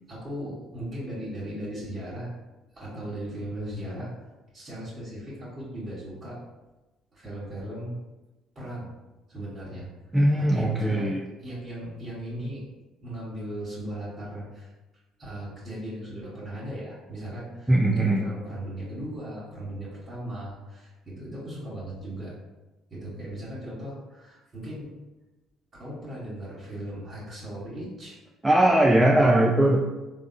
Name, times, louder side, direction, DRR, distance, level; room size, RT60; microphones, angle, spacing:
voice 1, 0.1-2.3 2.7-4.1 4.5-6.4 7.1-7.9 8.5-8.9 9.3-9.9 10.4-11.1 11.4-12.7 13.0-14.7 15.2-22.3 22.9-24.9 25.8-28.2, right 1 dB, 35° right, -9 dB, 1.1 m, -37 dB
voice 2, 10.1-11.2 17.7-18.3 28.4-29.8, right 1 dB, 10° right, -1 dB, 0.3 m, -20 dB
3.4 x 2.1 x 2.6 m, 1.1 s
hypercardioid pair, 60°, 0 cm